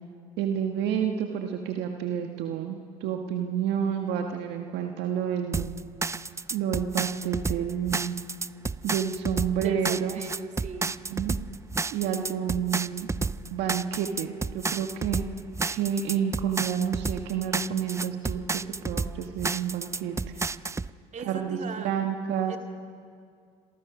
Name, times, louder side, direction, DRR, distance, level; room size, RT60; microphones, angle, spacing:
voice 1, 0.4-5.7 6.5-8.2 8.8-10.2 10.8-11.3 11.9-13.1 13.5-15.2 15.7-18.4 18.8-20.2 21.2-22.5, right 8 dB, 70° right, 3 dB, 1.6 m, -29 dB
sound 1, 5.5-20.9, right 4 dB, 15° right, 0.5 m, -31 dB
voice 2, 9.6-10.9 21.1-21.9 22.5-22.6, right 5 dB, 40° right, 4 dB, 2.7 m, -39 dB
27.0 x 22.5 x 6.2 m, 2.2 s
supercardioid pair, 75°, 18 cm